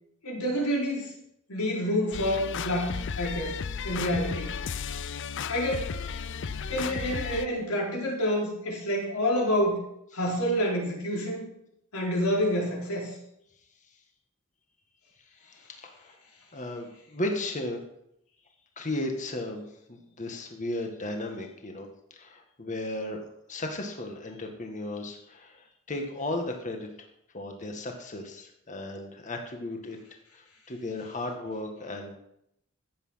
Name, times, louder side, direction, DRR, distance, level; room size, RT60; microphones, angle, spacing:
voice 1, 0.2-1.1 1.5-3.6 3.8-4.6 5.5-5.9 6.7-9.8 10.1-11.5 11.9-13.2, equal, 90° left, -2 dB, 4.6 m, -28 dB
sound 1, 2.1-7.5, left 6 dB, 60° left, 0.5 m, -34 dB
voice 2, 15.4-16.1 16.5-17.8 18.8-19.6 19.9-26.9 27.3-30.0 30.3-32.2, left 1 dB, 35° left, 3 dB, 1.8 m, -35 dB
14.0 x 8.4 x 5.8 m, 0.76 s
head